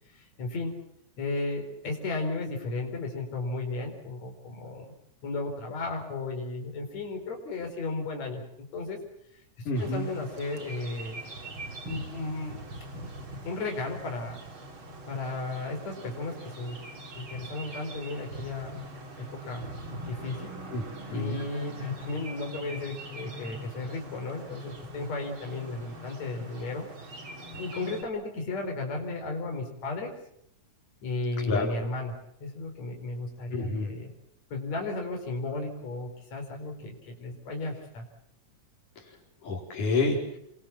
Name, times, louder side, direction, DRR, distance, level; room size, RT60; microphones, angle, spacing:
voice 1, 0.1-0.8 1.2-4.9 5.2-9.0 9.3-9.4 9.8-12.7 13.4-14.4 15.1-16.8 17.2-18.8 19.3-19.6 20.1-20.5 21.1-27.1 27.6-30.1 31.0-34.1 34.5-38.0, left 3 dB, 60° left, 2 dB, 5.8 m, -34 dB
voice 2, 9.7-10.1 20.7-20.8 21.1-21.4 31.4-31.7 33.5-33.9 39.0-39.2 39.4-40.4, left 3 dB, 85° left, 0 dB, 6.1 m, -29 dB
sound 1, 9.8-28.0, right 1 dB, 40° right, 4.0 m, -43 dB
28.5 x 24.0 x 7.4 m, 0.74 s
omnidirectional pair, 3.5 m